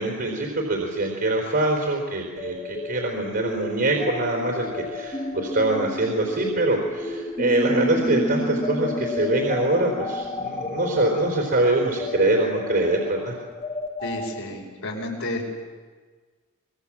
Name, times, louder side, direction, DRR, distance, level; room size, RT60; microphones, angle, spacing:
voice 1, 0.0-13.4, right 2 dB, 50° right, 0 dB, 4.2 m, -24 dB
sound 1, 2.4-14.2, left 1 dB, 25° left, 2.5 m, -31 dB
voice 2, 14.0-15.4, left 1 dB, 70° left, -1 dB, 6.0 m, -31 dB
26.5 x 22.0 x 7.6 m, 1.4 s
head